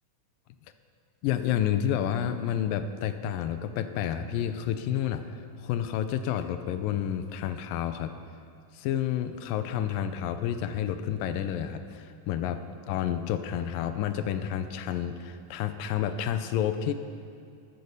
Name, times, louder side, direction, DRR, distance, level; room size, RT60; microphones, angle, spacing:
voice 1, 1.2-8.1 8.7-12.6 12.9-16.9, left 10 dB, 85° left, 10 dB, 2.4 m, -30 dB
14.0 x 12.5 x 6.6 m, 2.6 s
omnidirectional pair, 4.0 m